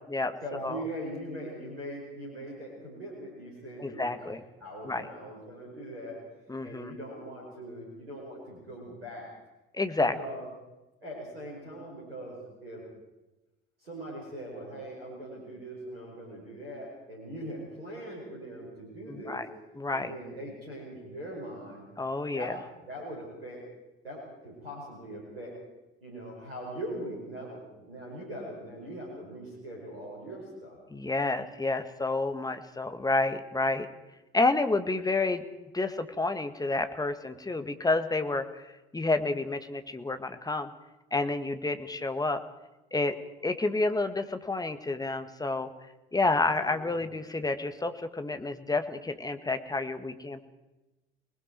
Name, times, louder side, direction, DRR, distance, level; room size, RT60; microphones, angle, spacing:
voice 1, 0.4-6.2 6.6-9.3 10.0-10.5 11.0-12.8 13.8-19.4 19.9-21.9 22.3-22.5 22.8-23.6 24.0-25.6 26.0-30.8 46.3-47.0, right 1 dB, 85° right, -3 dB, 5.2 m, -41 dB
voice 2, 3.8-4.4 4.8-5.1 6.5-6.9 9.7-10.1 19.1-19.5 19.8-20.1 22.0-22.6 30.9-33.9 34.3-35.4 35.7-38.6 38.9-40.7 41.1-42.4 42.9-43.2 43.4-45.7 46.1-50.5, left 3 dB, 15° left, 9 dB, 1.8 m, -29 dB
28.5 x 20.0 x 4.6 m, 1.0 s
figure-of-eight pair, 55°, 29 cm